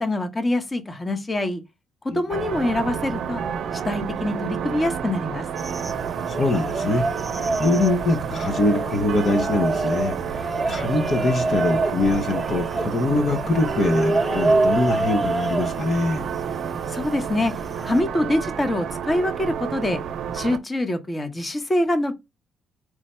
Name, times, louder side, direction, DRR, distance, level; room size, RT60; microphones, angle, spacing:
voice 1, 0.0-1.6 2.0-3.4 3.8-5.4 16.9-17.5 17.8-20.0 20.3-22.1, left 1 dB, 25° left, 1.0 m, -24 dB
sound 1, 2.3-20.6, right 8 dB, 70° right, 0.5 m, -30 dB
sound 2, 5.6-18.0, right 2 dB, 5° right, 0.9 m, -27 dB
voice 2, 6.3-7.0 7.6-16.2, left 2 dB, 50° left, 0.8 m, -23 dB
4.8 x 2.1 x 4.2 m
cardioid pair, 90°, 0 cm